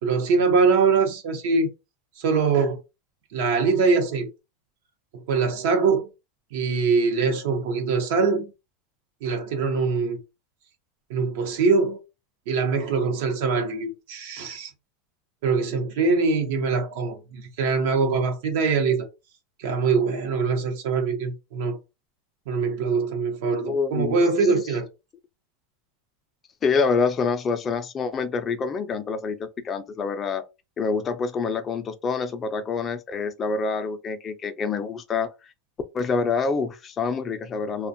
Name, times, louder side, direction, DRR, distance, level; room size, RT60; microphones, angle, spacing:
voice 1, 0.0-1.7 2.2-2.8 3.3-4.3 5.3-6.1 6.5-8.5 9.2-10.2 11.1-12.0 12.5-14.7 15.4-19.1 19.6-21.8 22.5-24.9, right 4 dB, 75° right, 0.7 m, -23 dB
voice 2, 23.6-24.2 26.6-30.4 30.8-35.3 35.9-37.9, left 5 dB, 25° left, 0.4 m, -26 dB
2.5 x 2.2 x 2.6 m
supercardioid pair, 140°, 0 cm